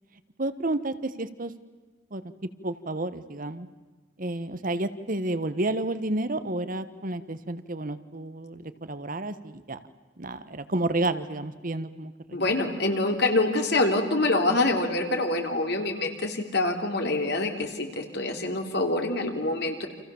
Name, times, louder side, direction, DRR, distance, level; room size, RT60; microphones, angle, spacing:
voice 1, 0.4-1.5 2.1-2.2 2.6-3.7 4.2-9.8 10.2-12.4, right 2 dB, 50° right, 12 dB, 1.3 m, -31 dB
voice 2, 12.3-19.9, left 2 dB, 65° left, 4 dB, 3.5 m, -26 dB
29.5 x 27.0 x 7.2 m, 1.3 s
head